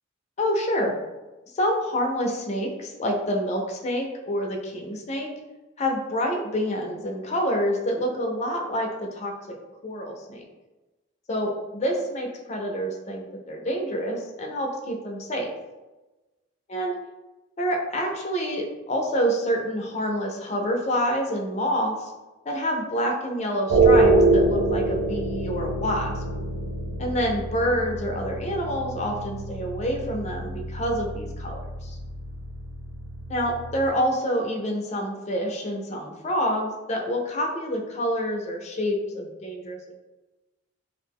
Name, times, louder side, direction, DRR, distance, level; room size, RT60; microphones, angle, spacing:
voice 1, 0.4-0.9 1.5-5.3 5.8-8.9 9.1-9.3 9.8-10.4 11.3-15.5 16.7-17.0 17.6-22.1 22.5-26.2 27.0-32.0 33.3-39.9, equal, 35° left, 1 dB, 0.4 m, -27 dB
sound 1, 23.7-33.9, right 2 dB, 90° right, 0.4 m, -25 dB
2.4 x 2.0 x 3.4 m, 1.1 s
head